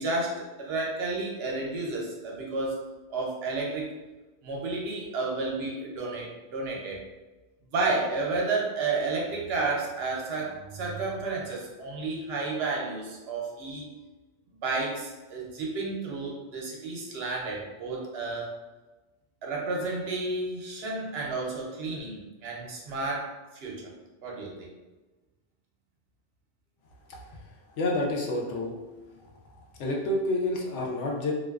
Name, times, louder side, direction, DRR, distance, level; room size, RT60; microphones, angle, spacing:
voice 1, 0.0-2.8 3.1-3.9 4.4-7.0 7.6-13.9 14.6-18.6 19.4-23.8 24.2-24.7, right 3 dB, 65° right, -2 dB, 0.8 m, -31 dB
voice 2, 27.7-28.7 29.8-31.3, left 2 dB, 80° left, -1 dB, 0.9 m, -28 dB
2.4 x 2.2 x 2.3 m, 1.2 s
omnidirectional pair, 1.2 m